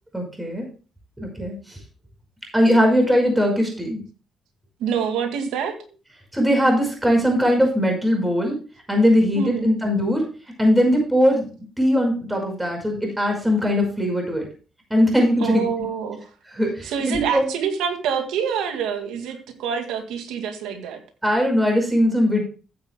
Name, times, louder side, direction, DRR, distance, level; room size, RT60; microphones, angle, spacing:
voice 1, 0.1-0.7 1.2-1.8 2.5-4.0 6.3-8.6 8.9-10.3 10.6-11.5 11.8-14.5 14.9-15.7 16.5-17.5 21.2-22.4, equal, 10° right, 1 dB, 5.5 m, -20 dB
voice 2, 4.8-5.8 9.3-9.7 15.4-16.2 16.8-21.0, right 7 dB, 90° right, 5 dB, 2.3 m, -26 dB
15.0 x 9.7 x 2.3 m, 0.35 s
cardioid pair, 90°, 0 cm